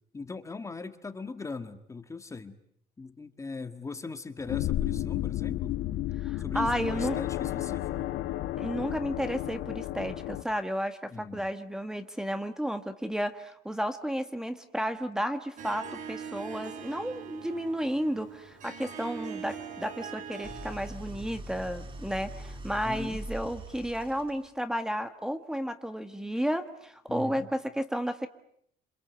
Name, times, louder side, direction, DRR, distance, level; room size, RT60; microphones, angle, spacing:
voice 1, 0.1-2.6 3.0-5.8 6.4-8.1 11.1-11.5 22.8-23.2 27.1-27.5, left 4 dB, 20° left, 9 dB, 1.7 m, -40 dB
sound 1, 4.4-10.4, left 14 dB, 85° left, 1.5 m, -32 dB
voice 2, 6.2-7.2 8.6-28.3, equal, 5° right, 9 dB, 1.6 m, -32 dB
Harp, 15.6-21.0, right 7 dB, 50° right, 3.9 m, -42 dB
Idling, 20.4-24.7, right 1 dB, 30° right, 4.8 m, -42 dB
27.5 x 26.5 x 8.2 m, 0.69 s
cardioid pair, 140°, 17 cm